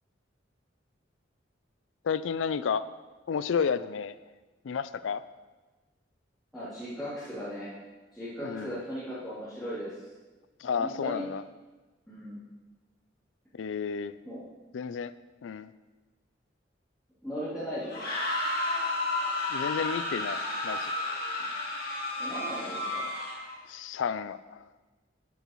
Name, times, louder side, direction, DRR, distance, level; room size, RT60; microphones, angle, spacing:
voice 1, 2.0-2.8 3.3-4.1 4.6-5.2 8.4-8.8 10.6-11.4 13.5-14.1 14.7-15.1 15.4-15.7 19.5-20.9 23.7-24.6, left 6 dB, 85° left, 14 dB, 0.4 m, -31 dB
voice 2, 6.5-7.7 8.1-10.1 10.6-11.2 12.1-12.4 14.2-14.4 17.2-18.1 22.2-23.0, equal, ahead, -15 dB, 2.9 m, -37 dB
sound 1, 17.8-23.6, left 2 dB, 55° left, 1.9 m, -32 dB
12.0 x 9.2 x 3.1 m, 1.2 s
head